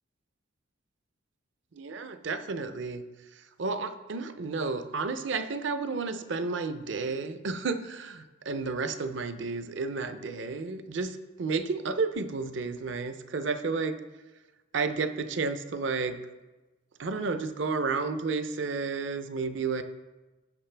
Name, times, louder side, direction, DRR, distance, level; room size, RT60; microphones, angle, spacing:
voice 1, 1.7-3.0 3.3-14.0 14.7-16.2 17.0-19.8, right 4 dB, 60° right, 10 dB, 0.5 m, -32 dB
14.5 x 5.7 x 3.3 m, 1.2 s
head